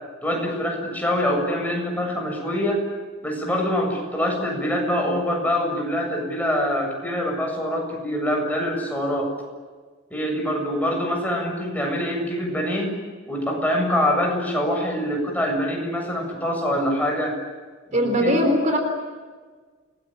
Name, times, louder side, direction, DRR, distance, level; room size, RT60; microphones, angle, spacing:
voice 1, 0.2-2.8 3.2-9.3 10.1-12.9 13.3-17.4 17.9-18.4, equal, 10° left, 0 dB, 7.5 m, -24 dB
voice 2, 17.9-18.8, equal, 40° right, 5 dB, 3.8 m, -20 dB
29.5 x 21.0 x 8.8 m, 1.5 s
head